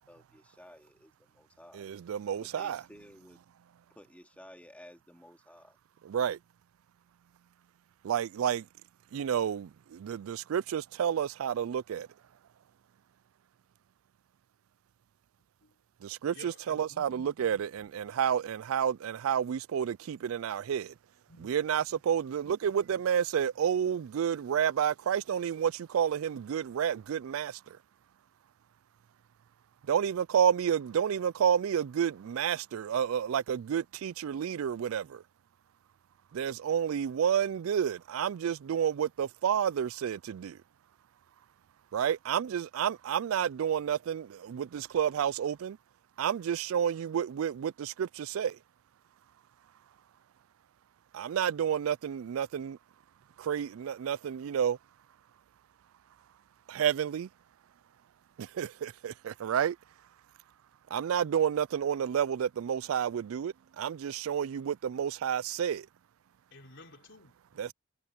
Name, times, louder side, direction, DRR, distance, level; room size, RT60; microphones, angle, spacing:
voice 1, 0.0-1.9 2.4-3.4 3.9-5.8, left 1 dB, 5° left, 2.5 m, -54 dB
voice 2, 1.7-2.8 6.0-6.4 8.0-8.7 9.1-12.1 16.0-20.9 21.4-27.8 29.9-35.2 36.3-40.6 41.9-45.8 46.2-48.6 51.1-52.8 53.4-54.8 56.7-57.3 58.4-59.8 60.9-65.9 67.6-67.7, right 8 dB, 80° right, 0.4 m, -30 dB
voice 3, 16.3-17.6 17.9-18.0 21.3-21.6 66.5-67.7, left 2 dB, 60° left, 3.7 m, -54 dB
head